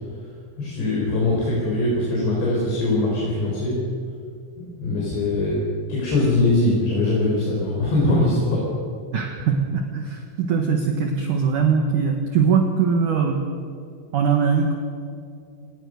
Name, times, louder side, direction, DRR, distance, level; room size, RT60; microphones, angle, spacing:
voice 1, 0.6-3.8 4.6-5.6 5.9-8.7, left 2 dB, 65° left, -4 dB, 6.3 m, -22 dB
voice 2, 9.1-13.4 14.1-14.7, right 6 dB, 60° right, 3 dB, 2.3 m, -21 dB
28.0 x 18.0 x 6.5 m, 2.4 s
omnidirectional pair, 5.4 m